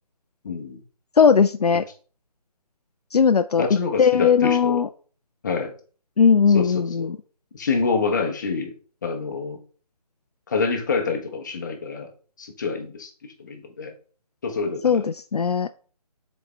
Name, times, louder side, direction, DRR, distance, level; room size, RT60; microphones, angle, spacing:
voice 1, 0.4-0.8 3.6-4.8 5.4-5.7 6.5-7.1 7.5-8.7 9.0-9.6 10.5-12.1 12.4-13.9 14.4-15.0, left 4 dB, 30° left, 5 dB, 0.8 m, -27 dB
voice 2, 1.2-1.8 3.1-3.7 4.0-4.9 6.2-7.2 14.8-15.7, left 6 dB, 70° left, 10 dB, 0.4 m, -18 dB
7.6 x 4.3 x 3.3 m, 0.41 s
figure-of-eight pair, 150°, 21 cm